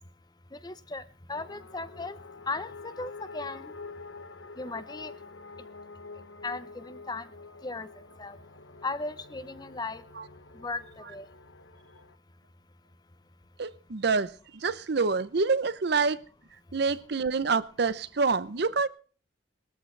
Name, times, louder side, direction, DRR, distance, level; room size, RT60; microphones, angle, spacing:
voice 1, 0.5-1.0 1.3-2.2 2.5-3.7 4.6-5.1 6.4-7.3 7.6-7.9 8.2-8.4 8.8-10.0 10.6-10.8 11.1-11.3, left 3 dB, 20° left, 0.8 m, -36 dB
sound 1, 1.3-12.2, left 4 dB, 85° left, 1.2 m, -47 dB
voice 2, 13.6-16.2 16.7-18.9, right 4 dB, 60° right, 0.7 m, -27 dB
20.0 x 14.0 x 3.3 m
head